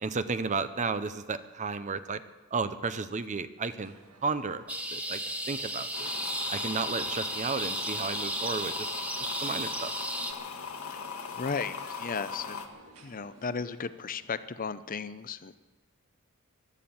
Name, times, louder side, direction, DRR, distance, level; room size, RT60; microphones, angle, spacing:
voice 1, 0.0-2.2 2.5-4.0 4.2-4.6 4.9-5.2 5.5-6.1 6.5-8.9 9.2-9.9, right 4 dB, 35° right, 12 dB, 0.6 m, -33 dB
sound 1, 3.8-14.5, right 2 dB, 85° right, 1.7 m, -56 dB
sound 2, 4.7-10.3, right 1 dB, 5° right, 1.0 m, -34 dB
sound 3, 5.9-12.7, left 5 dB, 75° left, 1.6 m, -40 dB
voice 2, 11.3-12.7 13.0-15.6, left 5 dB, 40° left, 13 dB, 0.6 m, -35 dB
16.5 x 12.0 x 7.1 m, 1.3 s
head